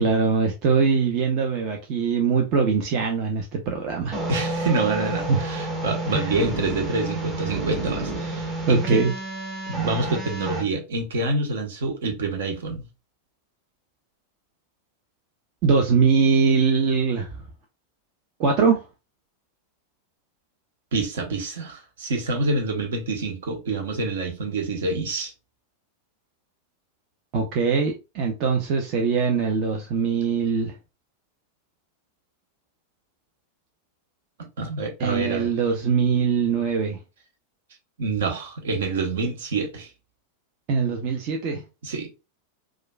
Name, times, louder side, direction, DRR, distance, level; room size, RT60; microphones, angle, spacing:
voice 1, 0.0-4.2 5.3-5.4 6.1-6.3 7.5-7.6 8.7-9.1 15.6-17.3 18.4-18.8 27.3-30.7 35.0-37.0 40.7-41.6, right 5 dB, 40° right, 0.7 m, -22 dB
sound 1, 4.1-10.6, right 2 dB, 20° right, 1.1 m, -30 dB
voice 2, 4.3-9.0 9.7-12.8 20.9-25.3 34.4-35.5 38.0-39.9 41.5-42.2, right 3 dB, 60° right, 1.0 m, -27 dB
4.7 x 2.4 x 2.2 m
figure-of-eight pair, 90°, 0 cm